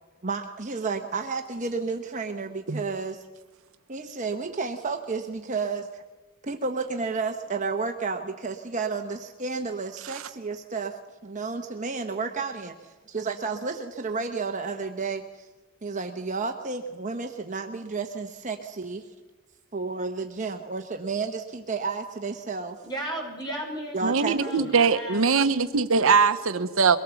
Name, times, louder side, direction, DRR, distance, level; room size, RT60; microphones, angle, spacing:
voice 1, 0.2-3.2 3.9-6.0 6.4-15.5 15.8-19.0 19.7-22.8 23.9-24.7 25.3-25.5, right 4 dB, 35° right, 5 dB, 1.0 m, -31 dB
voice 2, 22.8-25.3, right 1 dB, 20° left, 0 dB, 5.9 m, -35 dB
voice 3, 24.0-27.0, right 5 dB, 65° right, 10 dB, 0.8 m, -22 dB
23.0 x 18.0 x 7.0 m, 1.2 s
head